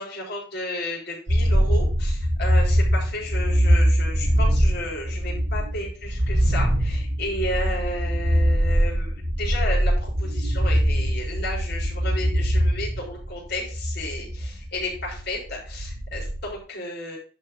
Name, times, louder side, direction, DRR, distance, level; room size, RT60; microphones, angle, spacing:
voice 1, 0.0-17.2, left 1 dB, 50° left, -2 dB, 4.4 m, -33 dB
sound 1, 1.3-16.5, equal, 75° right, 2.3 m, -23 dB
11.0 x 5.0 x 3.7 m, 0.41 s
head